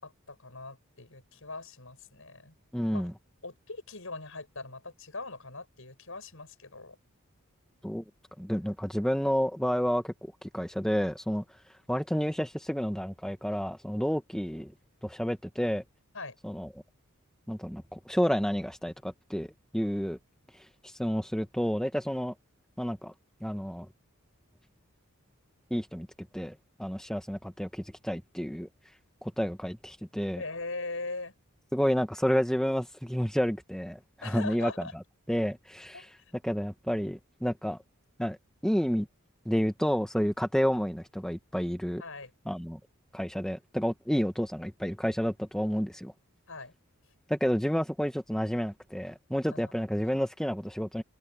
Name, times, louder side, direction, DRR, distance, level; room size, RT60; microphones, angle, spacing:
voice 1, 0.0-2.5 2.9-3.0 3.4-7.0 16.1-16.4 30.4-31.3 34.2-34.9 35.9-36.4 42.0-42.3 46.5-46.7 49.5-49.6, left 3 dB, 70° left, 6.5 m, -41 dB
voice 2, 2.7-3.1 7.8-8.0 8.4-10.1 10.4-11.4 11.9-14.7 15.0-15.8 16.4-16.7 17.5-20.2 20.8-22.3 22.8-23.1 23.4-23.9 25.7-26.1 26.3-28.7 29.2-30.4 31.7-34.8 35.3-36.1 36.4-37.8 38.2-38.4 38.6-39.1 39.4-42.0 42.5-42.8 43.1-46.1 47.3-51.0, equal, 5° left, 1.3 m, -30 dB
open air
head